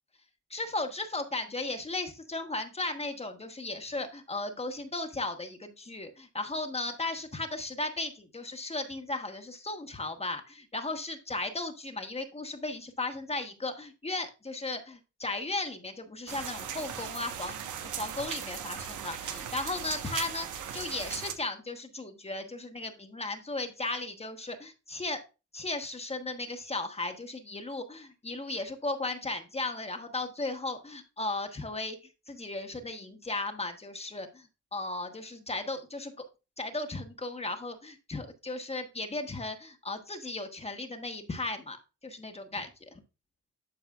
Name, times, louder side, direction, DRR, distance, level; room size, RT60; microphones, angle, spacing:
voice 1, 0.5-25.2 25.5-32.0 32.3-36.1 36.6-41.8 42.0-43.0, left 2 dB, 20° left, 5 dB, 1.1 m, -36 dB
sound 1, 16.3-21.3, right 8 dB, 80° right, 1.1 m, -38 dB
11.5 x 4.8 x 2.4 m, 0.30 s
cardioid pair, 90°, 30 cm